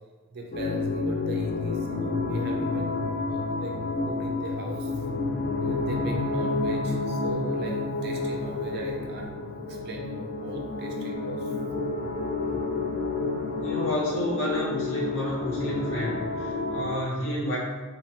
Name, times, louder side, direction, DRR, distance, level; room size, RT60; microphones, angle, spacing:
voice 1, 0.3-3.0 3.3-3.7 4.0-4.9 5.6-9.4 9.7-11.5, right 1 dB, 45° right, 1 dB, 0.4 m, -38 dB
sound 1, 0.5-17.0, left 3 dB, 45° left, 0.3 m, -29 dB
voice 2, 13.6-17.6, equal, 60° left, -7 dB, 1.0 m, -30 dB
2.9 x 2.2 x 2.8 m, 1.3 s
head